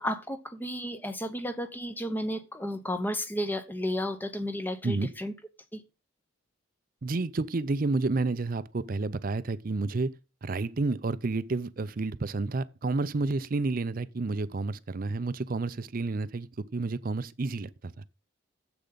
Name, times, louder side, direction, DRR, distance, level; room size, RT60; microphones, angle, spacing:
voice 1, 0.0-5.3 5.7-5.8, equal, 10° left, 0.9 m, -33 dB
voice 2, 7.0-18.2, right 3 dB, 45° right, 0.5 m, -30 dB
10.0 x 7.9 x 4.0 m
head